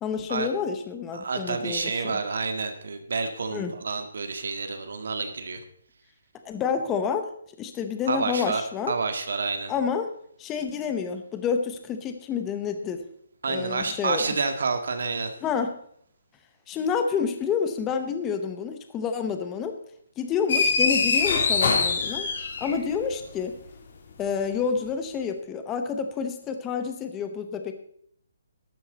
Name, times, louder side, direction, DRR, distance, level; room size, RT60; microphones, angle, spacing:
voice 1, 0.0-2.2 3.5-3.7 6.4-7.3 7.6-8.9 9.7-10.1 10.4-13.0 13.5-14.3 15.4-15.7 16.7-19.8 20.2-22.3 22.6-23.6 24.2-27.7, left 6 dB, 10° left, 7 dB, 0.8 m, -28 dB
voice 2, 1.1-5.6 8.1-8.6 8.9-9.7 13.4-15.3, right 4 dB, 60° right, 7 dB, 1.7 m, -29 dB
sound 1, 20.5-23.0, left 4 dB, 40° left, 1.9 m, -23 dB
12.5 x 12.5 x 4.0 m, 0.65 s
hypercardioid pair, 175°, 0 cm